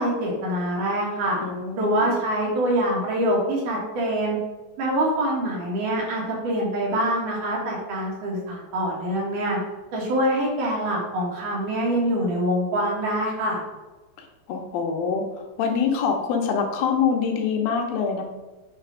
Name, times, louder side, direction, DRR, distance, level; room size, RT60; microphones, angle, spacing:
voice 1, 0.0-1.4 1.7-4.4 4.8-9.6 9.9-13.6, right 1 dB, 65° right, -3 dB, 3.2 m, -25 dB
voice 2, 1.4-2.1 14.2-15.3 15.6-18.2, left 6 dB, 90° left, 2 dB, 2.7 m, -25 dB
8.9 x 3.3 x 5.0 m, 1.2 s
omnidirectional pair, 4.1 m